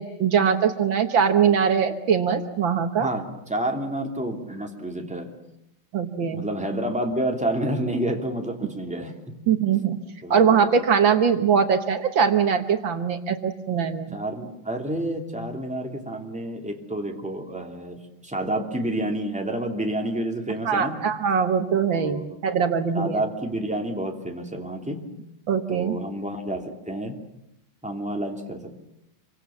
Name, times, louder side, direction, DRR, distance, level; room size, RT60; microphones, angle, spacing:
voice 1, 0.0-3.1 5.9-6.4 9.5-10.0 10.3-14.2 20.7-23.2 25.5-26.0, right 7 dB, 70° right, 7 dB, 2.0 m, -22 dB
voice 2, 3.0-5.4 6.3-9.3 10.2-10.8 14.1-21.1 21.9-22.4 22.9-25.1 25.7-27.2 27.8-28.8, right 1 dB, 5° right, 2 dB, 2.8 m, -29 dB
27.0 x 24.5 x 7.2 m, 0.82 s
omnidirectional pair, 2.3 m